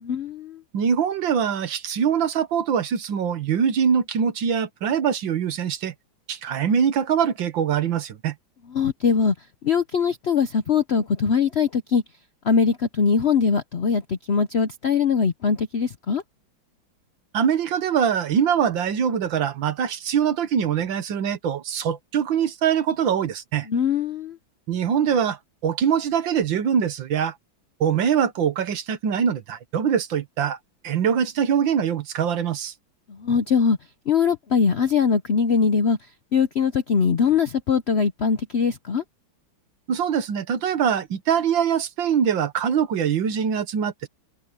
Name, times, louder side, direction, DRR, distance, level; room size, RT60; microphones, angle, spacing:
voice 1, 0.0-0.6 8.7-9.3 9.6-12.0 12.4-16.2 23.7-24.4 33.1-33.8 34.1-36.0 36.3-39.0, left 6 dB, 60° left, 0.6 m, -21 dB
voice 2, 0.7-5.9 6.3-8.3 17.3-23.7 24.7-27.4 27.8-30.6 30.8-32.7 39.9-44.1, right 8 dB, 75° right, 1.9 m, -23 dB
omnidirectional pair, 2.1 m